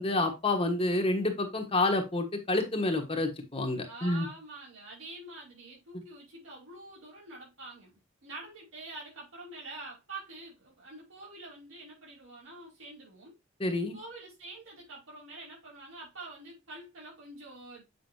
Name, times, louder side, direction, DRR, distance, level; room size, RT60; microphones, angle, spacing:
voice 1, 0.0-4.3 13.6-13.9, left 2 dB, 30° left, 1.4 m, -28 dB
voice 2, 3.9-13.3 13.9-17.8, right 2 dB, 75° right, 5.2 m, -46 dB
8.1 x 5.7 x 2.8 m
head